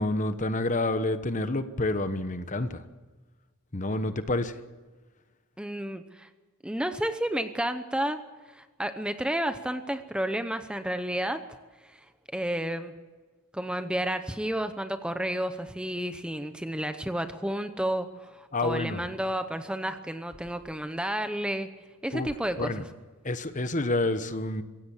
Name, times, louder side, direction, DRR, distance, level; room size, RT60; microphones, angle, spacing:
voice 1, 0.0-2.8 3.7-4.6 18.5-19.0 22.1-22.3 22.6-22.8 23.2-24.6, left 2 dB, 35° left, 10 dB, 1.2 m, -28 dB
voice 2, 5.6-6.3 6.6-8.2 8.5-11.4 11.8-12.1 12.3-12.9 13.5-21.7 22.0-22.7, right 1 dB, 5° right, 9 dB, 0.8 m, -31 dB
24.5 x 16.5 x 7.3 m, 1.3 s
head